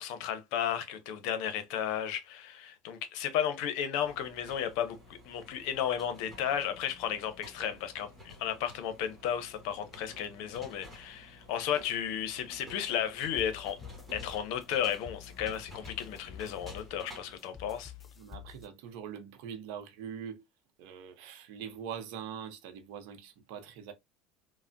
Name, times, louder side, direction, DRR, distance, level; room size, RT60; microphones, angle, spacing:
voice 1, 0.0-13.8 14.1-17.9, left 9 dB, 70° left, 0.6 m, -34 dB
sound 1, 4.0-17.4, left 1 dB, 10° right, 1.3 m, -53 dB
sound 2, 13.4-18.7, left 9 dB, 25° left, 0.3 m, -49 dB
voice 2, 18.2-20.5 20.8-23.9, right 8 dB, 75° right, 0.6 m, -43 dB
3.3 x 2.0 x 2.5 m
supercardioid pair, 105°, 0 cm